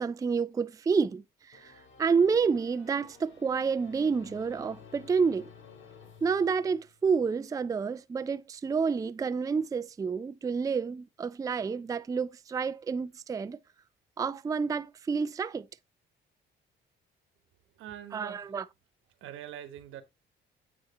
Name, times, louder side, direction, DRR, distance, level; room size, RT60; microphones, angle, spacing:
voice 1, 0.0-5.5 6.2-13.6 14.2-15.7 18.1-18.6, right 5 dB, 15° right, 0.3 m, -29 dB
sound 1, 1.5-7.2, left 6 dB, 75° left, 2.0 m, -54 dB
voice 2, 17.7-18.4 19.2-20.0, right 11 dB, 90° right, 1.2 m, -43 dB
8.9 x 3.0 x 4.1 m
cardioid pair, 90°, 20 cm